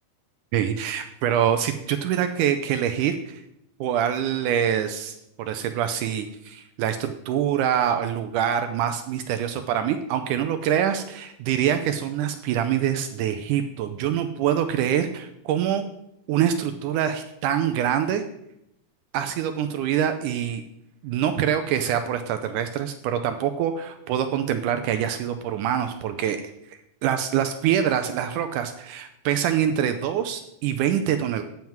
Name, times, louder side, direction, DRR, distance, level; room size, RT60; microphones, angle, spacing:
voice 1, 0.5-3.4 3.8-15.8 16.3-18.2 19.1-20.6 21.0-26.4 27.0-31.4, right 9 dB, 85° right, 8 dB, 1.8 m, -25 dB
9.3 x 7.3 x 4.5 m, 0.80 s
omnidirectional pair, 4.2 m